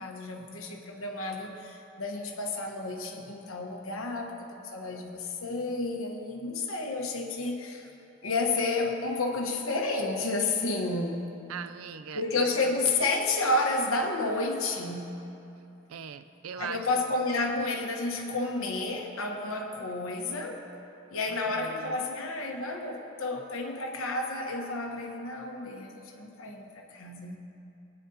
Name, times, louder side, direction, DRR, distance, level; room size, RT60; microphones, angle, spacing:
voice 1, 0.0-7.9 8.2-11.3 12.1-15.2 16.6-20.6 21.1-27.4, left 2 dB, 85° left, 1 dB, 1.2 m, -31 dB
voice 2, 11.5-12.5 15.9-17.0 21.2-22.1, right 7 dB, 85° right, 11 dB, 0.4 m, -41 dB
21.5 x 9.2 x 2.8 m, 2.8 s
head